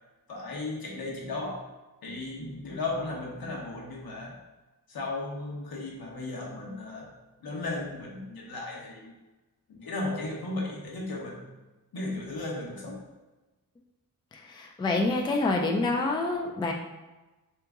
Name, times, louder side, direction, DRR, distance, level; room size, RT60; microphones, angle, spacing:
voice 1, 0.3-1.6 2.0-4.4 4.9-7.1 7.4-9.1 9.7-11.5 11.9-13.0, left 2 dB, 80° left, -2 dB, 1.1 m, -35 dB
voice 2, 14.3-16.7, left 2 dB, 15° left, 1 dB, 0.3 m, -27 dB
3.5 x 2.9 x 3.6 m, 1.1 s
wide cardioid pair, 150°, 36 cm